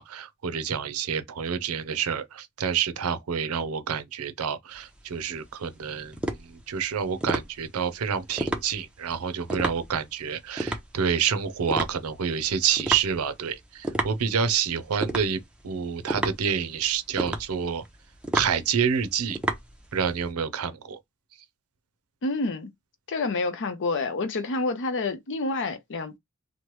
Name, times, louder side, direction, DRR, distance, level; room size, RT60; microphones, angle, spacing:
voice 1, 0.0-17.8 18.3-19.4 19.9-21.0, right 7 dB, 75° right, 0.5 m, -28 dB
sound 1, 4.7-20.3, right 1 dB, 5° right, 0.5 m, -33 dB
voice 2, 22.2-22.7 23.1-26.2, left 3 dB, 60° left, 0.6 m, -28 dB
3.0 x 2.1 x 3.0 m
head